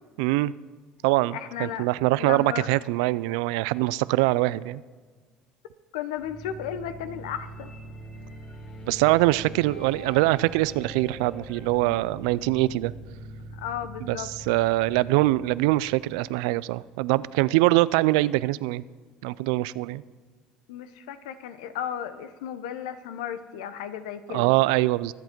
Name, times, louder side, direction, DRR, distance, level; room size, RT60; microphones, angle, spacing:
voice 1, 0.2-0.5 1.0-4.8 8.9-12.9 14.1-14.2 14.5-18.8 19.2-20.0 24.3-25.1, right 19 dB, 80° right, 19 dB, 0.4 m, -23 dB
voice 2, 1.3-1.9 2.2-2.7 5.9-7.7 13.5-14.3 20.7-24.5, left 9 dB, 90° left, 12 dB, 0.8 m, -34 dB
sound 1, 6.2-17.1, right 1 dB, 35° left, 2.5 m, -43 dB
22.5 x 8.1 x 4.5 m, 1.5 s
supercardioid pair, 95°, 3 cm